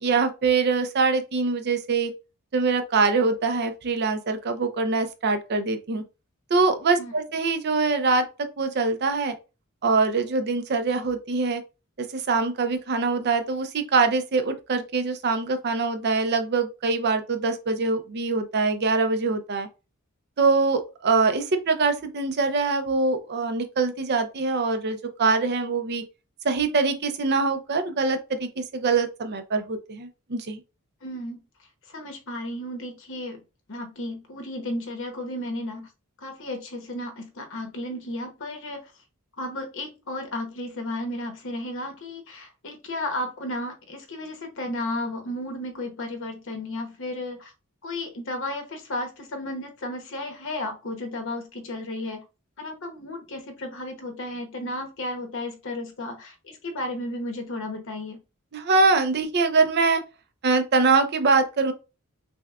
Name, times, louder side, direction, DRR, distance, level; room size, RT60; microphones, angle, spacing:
voice 1, 0.0-2.1 2.5-6.0 6.5-8.3 8.6-9.3 9.8-11.6 12.1-19.7 20.4-26.0 26.4-30.6 58.5-60.0 60.4-61.7, right 4 dB, 50° right, 0.6 m, -23 dB
voice 2, 31.0-31.4 31.9-33.4 33.7-35.9 36.2-38.9 39.4-47.5 47.8-52.2 52.6-58.2, left 1 dB, 60° left, 1.0 m, -33 dB
6.0 x 2.2 x 2.4 m
head